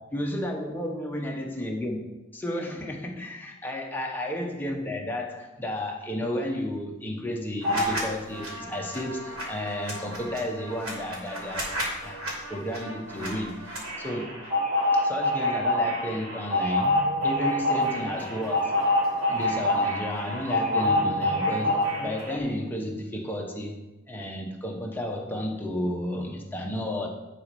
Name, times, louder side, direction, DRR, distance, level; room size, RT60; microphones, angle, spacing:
voice 1, 0.0-11.7 12.0-12.2 12.5-14.3 14.9-18.8 19.3-27.1, left 1 dB, 10° left, 0 dB, 1.0 m, -32 dB
sound 1, 7.6-8.0 8.3-22.4, left 1 dB, 75° right, 2.9 m, -27 dB
10.5 x 4.2 x 5.3 m, 1.1 s
head